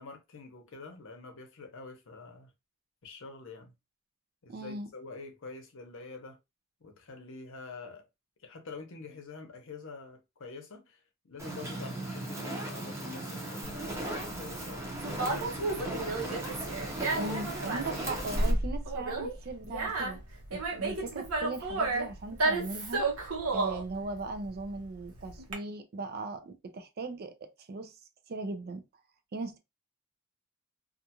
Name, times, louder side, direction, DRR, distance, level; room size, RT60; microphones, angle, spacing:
voice 1, 0.0-2.5 3.0-3.7 4.4-6.4 6.8-8.0 8.4-16.2, left 4 dB, 65° left, 0.7 m, -46 dB
voice 2, 4.5-4.9 17.1-20.2 20.5-23.0 23.5-27.9 28.3-28.8 29.3-29.6, right 3 dB, 50° right, 0.4 m, -38 dB
Fire, 11.4-18.5, right 1 dB, 15° right, 0.7 m, -37 dB
Conversation, 13.7-25.5, right 2 dB, 85° right, 0.9 m, -32 dB
2.5 x 2.3 x 2.8 m
head